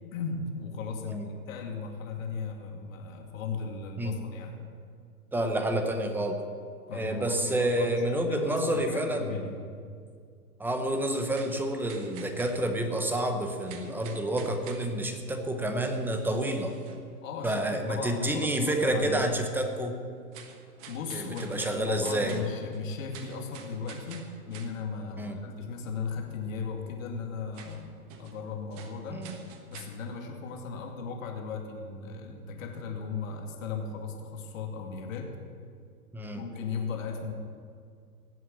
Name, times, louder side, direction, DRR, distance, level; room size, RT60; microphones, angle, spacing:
voice 1, 0.1-4.7 6.9-9.6 17.2-19.4 20.9-29.3 29.7-35.3 36.3-37.3, left 5 dB, 55° left, 2 dB, 2.5 m, -36 dB
voice 2, 5.3-6.4 6.9-9.3 10.6-16.7 17.4-20.0 21.1-22.4 25.2-25.4 29.1-29.3 36.1-36.4, right 1 dB, 5° right, 5 dB, 0.8 m, -29 dB
sound 1, 11.3-13.3 13.7-15.1 15.8-17.1 17.4-17.7 20.3-24.8 27.5-28.4 28.7-29.9, right 7 dB, 30° right, 1.4 m, -49 dB
17.5 x 7.8 x 7.7 m, 2.2 s
hypercardioid pair, 135°, 47 cm